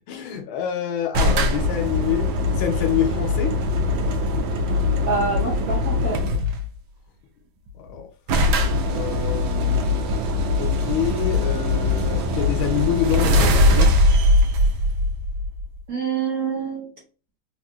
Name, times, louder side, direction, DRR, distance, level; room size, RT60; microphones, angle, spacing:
voice 1, 0.1-3.5 7.7-8.1 8.8-10.1 10.6-13.9, left 10 dB, 75° left, 1.3 m, -27 dB
sound 1, 1.1-6.7 7.7-7.8 7.9-8.0 8.3-15.8, left 2 dB, 75° right, 1.3 m, -21 dB
voice 2, 5.1-6.2 15.9-16.9, right 4 dB, 60° right, 1.0 m, -26 dB
3.6 x 2.6 x 2.2 m
omnidirectional pair, 2.4 m